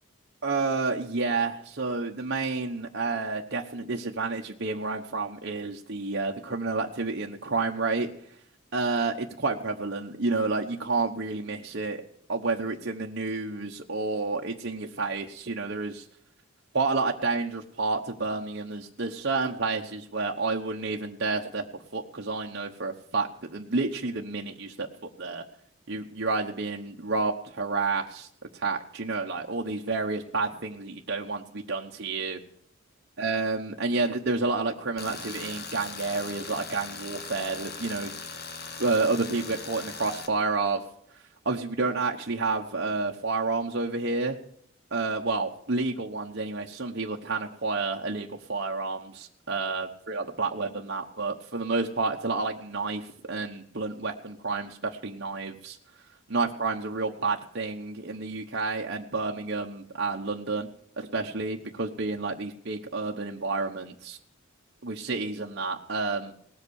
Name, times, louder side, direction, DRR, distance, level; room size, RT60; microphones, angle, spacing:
voice 1, 0.4-8.1 8.7-12.0 12.3-16.0 16.7-24.9 25.2-25.4 25.9-28.3 28.5-32.4 33.2-38.1 38.8-40.8 41.4-44.4 44.9-55.8 56.3-60.7 61.0-64.2 64.8-66.3, right 3 dB, 55° right, 0 dB, 1.1 m, -30 dB
Tools, 35.0-40.3, left 4 dB, 50° left, 1.7 m, -39 dB
18.5 x 8.1 x 6.4 m, 0.68 s
head